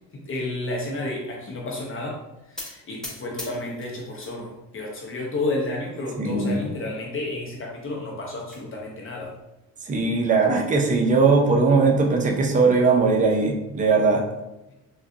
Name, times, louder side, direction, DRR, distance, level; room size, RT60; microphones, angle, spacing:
voice 1, 0.1-2.2 2.5-9.3, left 2 dB, 35° left, -1 dB, 0.7 m, -31 dB
sound 1, 2.6-4.4 4.7-5.4 5.9-6.0 6.3-6.4 6.8-6.9 8.0-8.6, left 1 dB, ahead, 0.9 m, -40 dB
voice 2, 6.2-6.7 9.9-14.2, right 4 dB, 20° right, 1 dB, 0.5 m, -20 dB
3.5 x 2.3 x 2.6 m, 0.94 s
cardioid pair, 100°, 36 cm